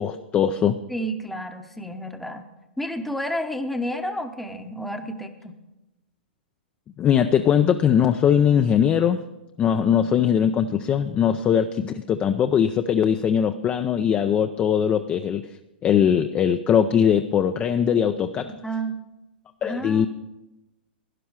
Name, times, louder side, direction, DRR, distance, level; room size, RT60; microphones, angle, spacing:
voice 1, 0.0-0.8 7.0-9.2 9.6-15.4 15.8-18.5 19.6-20.1, left 8 dB, 25° left, 8 dB, 0.4 m, -20 dB
voice 2, 0.9-2.4 2.8-5.6 18.4-19.0 19.6-20.1, equal, ahead, 6 dB, 0.8 m, -30 dB
12.5 x 10.0 x 4.7 m, 0.99 s
hypercardioid pair, 120°, 6 cm